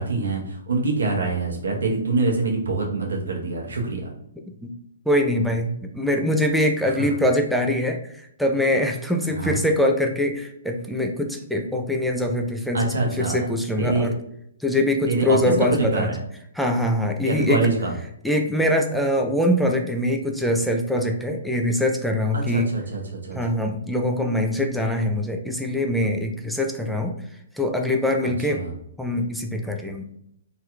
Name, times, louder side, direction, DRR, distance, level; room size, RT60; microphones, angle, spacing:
voice 1, 0.0-4.1 6.8-7.1 9.3-9.6 12.7-13.5 13.8-14.1 15.1-16.2 17.2-17.9 22.3-23.4 28.2-28.8, right 3 dB, 80° right, 0 dB, 1.0 m, -25 dB
voice 2, 5.1-14.1 14.6-16.1 16.6-17.6 18.2-22.7 23.3-27.1 27.5-28.6 29.0-30.0, left 1 dB, ahead, 2 dB, 0.3 m, -23 dB
3.0 x 3.0 x 2.4 m, 0.72 s
hypercardioid pair, 135°, 0 cm